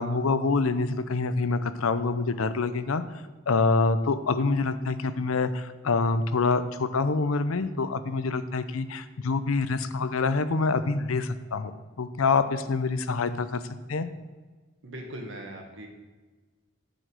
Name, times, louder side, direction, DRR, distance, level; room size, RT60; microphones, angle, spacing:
voice 1, 0.0-3.0 3.5-11.7 12.0-13.6 13.9-14.1, left 4 dB, 80° left, 12 dB, 0.6 m, -26 dB
voice 2, 14.8-15.9, right 1 dB, 60° right, 2 dB, 1.7 m, -39 dB
9.8 x 5.2 x 7.8 m, 1.3 s
head